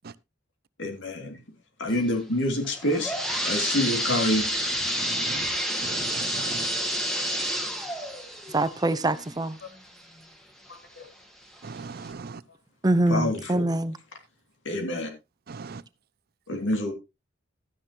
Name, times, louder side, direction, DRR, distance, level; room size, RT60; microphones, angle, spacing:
voice 1, 0.8-1.4 1.8-4.5 11.0-11.1 13.1-13.7 14.6-15.1 16.5-16.9, left 1 dB, 80° left, 2.5 m, -27 dB
sound 1, 2.6-10.3 10.7-10.8 11.6-11.7 12.1-12.2, equal, ahead, 1.8 m, -29 dB
voice 2, 5.1-5.4 5.8-6.6 11.6-12.3 15.5-15.8, right 4 dB, 55° right, 0.6 m, -38 dB
voice 3, 8.5-9.6 12.8-14.0, right 2 dB, 20° right, 0.8 m, -24 dB
13.0 x 9.7 x 2.9 m
head